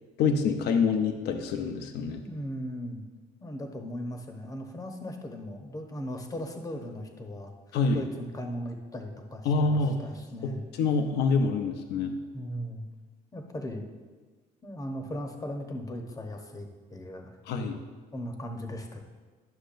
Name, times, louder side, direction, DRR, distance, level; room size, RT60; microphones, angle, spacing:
voice 1, 0.2-2.2 7.7-8.0 9.4-10.0 10.4-10.5 10.8-12.1 17.5-17.8, left 4 dB, 75° left, 5 dB, 0.8 m, -26 dB
voice 2, 2.2-3.0 3.4-10.7 12.3-12.8 13.3-13.9 14.6-17.4 18.1-19.0, equal, 20° left, 3 dB, 1.0 m, -38 dB
12.0 x 6.3 x 2.6 m, 1.4 s
cardioid pair, 110°, 17 cm